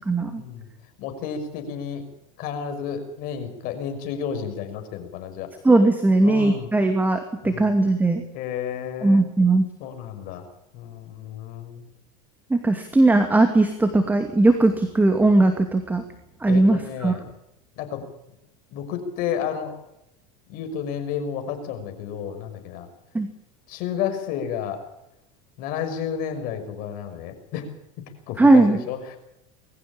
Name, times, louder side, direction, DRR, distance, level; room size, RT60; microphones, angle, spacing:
voice 1, 0.1-0.4 5.6-8.2 9.0-9.7 12.5-16.0 16.4-17.2 23.1-23.3 28.4-28.8, right 2 dB, 10° right, 6 dB, 2.5 m, -18 dB
voice 2, 1.0-2.0 2.4-5.5 6.2-6.7 7.4-7.7 8.3-9.3 9.8-10.5 10.7-11.8 16.5-17.2 17.8-18.0 18.7-19.8 20.5-22.9 23.7-24.8 25.6-27.7 28.3-29.2, left 8 dB, 55° left, 7 dB, 5.9 m, -31 dB
23.0 x 14.5 x 8.7 m, 0.83 s
supercardioid pair, 120°, 18 cm